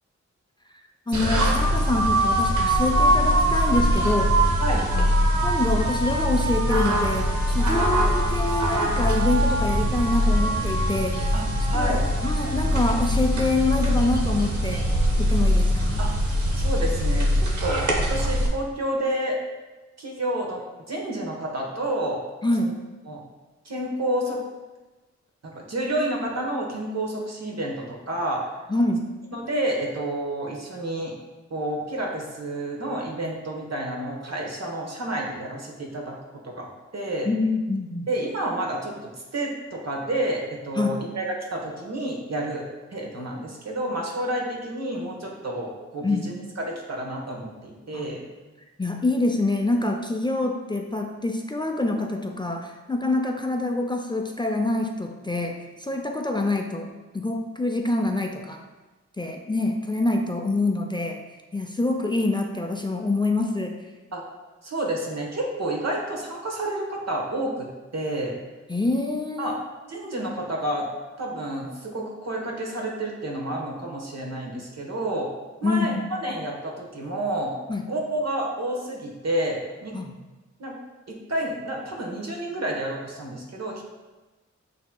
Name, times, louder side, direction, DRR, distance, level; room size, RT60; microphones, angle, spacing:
voice 1, 1.1-4.4 4.9-5.1 5.4-11.3 11.7-11.9 12.2-14.9 15.2-16.0 22.4-22.8 28.7-29.1 37.3-38.1 40.8-41.1 46.0-46.3 47.9-48.1 48.8-58.6 59.2-61.2 61.5-63.9 68.7-69.6 75.6-76.1 77.7-77.9 79.9-80.1, left 2 dB, 15° left, 2 dB, 0.4 m, -26 dB
sound 1, 1.1-18.5, equal, 80° right, 0.8 m, -22 dB
voice 2, 11.3-12.0 16.0-16.2 16.5-19.4 20.0-20.6 20.9-22.2 22.6-22.7 23.1-23.2 23.6-24.4 25.4-28.5 29.3-31.1 31.5-36.2 36.4-36.7 36.9-37.3 38.1-38.9 39.3-41.3 41.5-48.2 64.1-64.2 64.6-67.7 67.9-68.4 69.4-69.6 69.9-70.9 71.2-75.3 75.6-75.9 76.2-77.5 77.9-80.0 80.6-80.7 81.1-83.8, right 1 dB, 65° right, -1 dB, 1.1 m, -29 dB
8.0 x 2.8 x 2.2 m, 1.2 s
cardioid pair, 50°, 29 cm